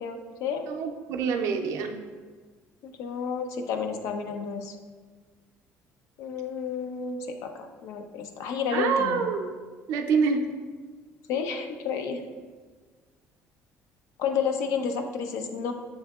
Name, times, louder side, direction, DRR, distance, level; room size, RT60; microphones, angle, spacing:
voice 1, 0.0-0.6 2.8-4.8 6.2-9.2 11.3-12.2 14.2-15.7, left 6 dB, 80° left, 6 dB, 0.4 m, -31 dB
voice 2, 0.7-2.0 8.7-9.5 9.9-10.4, right 5 dB, 85° right, 4 dB, 0.4 m, -26 dB
6.9 x 2.7 x 2.3 m, 1.5 s
cardioid pair, 135°, 5 cm